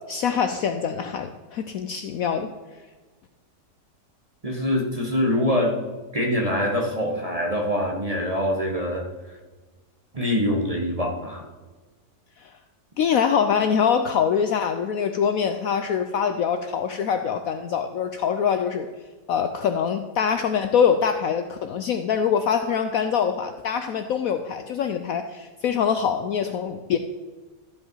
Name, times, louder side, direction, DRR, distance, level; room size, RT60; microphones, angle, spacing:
voice 1, 0.1-2.5 13.0-18.9 19.3-27.0, left 7 dB, 70° left, 7 dB, 0.9 m, -24 dB
voice 2, 4.4-5.8 6.1-9.1 10.1-11.4, left 1 dB, 25° right, 1 dB, 1.1 m, -24 dB
14.0 x 5.2 x 4.5 m, 1.3 s
omnidirectional pair, 1.9 m